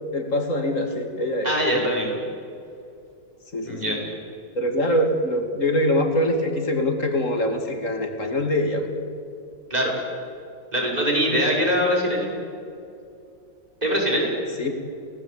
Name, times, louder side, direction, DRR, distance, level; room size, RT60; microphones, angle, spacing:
voice 1, 0.1-1.5 3.5-4.0 4.5-8.9 14.6-14.7, left 1 dB, 40° left, 4 dB, 2.9 m, -24 dB
voice 2, 1.4-2.2 3.6-4.0 9.7-9.9 10.7-12.3 13.8-14.3, equal, 20° right, -2 dB, 6.3 m, -22 dB
30.0 x 19.0 x 8.7 m, 2.6 s
omnidirectional pair, 2.1 m